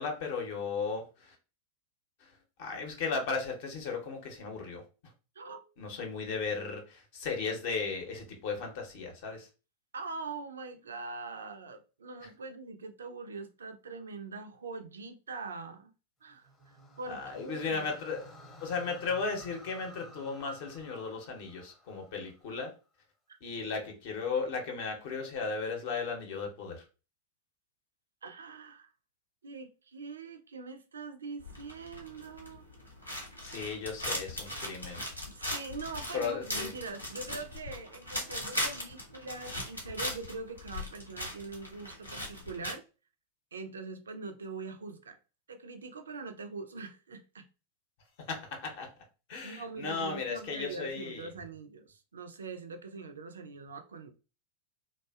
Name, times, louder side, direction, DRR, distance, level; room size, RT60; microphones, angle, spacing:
voice 1, 0.0-1.3 2.6-4.8 5.8-9.5 17.1-18.3 18.6-22.7 23.4-26.8 33.4-35.0 36.1-36.7 48.3-48.9 49.3-51.3, left 4 dB, 50° left, 0.7 m, -35 dB
voice 2, 9.9-15.9 16.2-17.9 23.3-23.4 28.2-28.9 29.4-32.7 35.3-42.8 43.5-45.2 45.5-47.5 49.4-54.1, right 4 dB, 70° right, 0.3 m, -43 dB
sound 1, 16.3-22.6, equal, 10° left, 0.6 m, -54 dB
sound 2, 31.4-42.7, equal, 90° left, 0.6 m, -39 dB
2.6 x 2.1 x 2.2 m
figure-of-eight pair, 90°, 0 cm